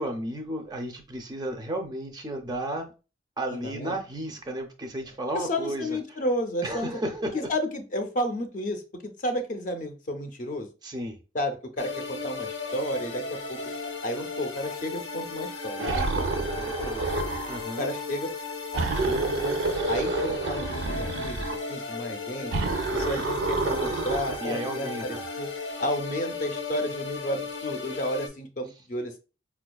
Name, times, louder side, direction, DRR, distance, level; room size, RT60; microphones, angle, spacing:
voice 1, 0.0-2.9 3.4-6.0 6.6-7.5 10.8-11.2 17.5-17.9 24.4-25.2, right 1 dB, 20° right, 0.4 m, -33 dB
voice 2, 3.5-3.9 5.3-7.0 7.3-10.7 11.3-13.6 14.0-17.0 17.8-18.3 19.1-22.5 22.9-25.5 25.8-29.2, left 1 dB, 45° left, 0.5 m, -32 dB
sound 1, 11.8-28.3, left 4 dB, 85° left, 0.7 m, -36 dB
sound 2, 15.8-17.6 18.7-21.6 22.5-24.5, right 3 dB, 80° right, 0.4 m, -28 dB
4.3 x 2.3 x 2.2 m
head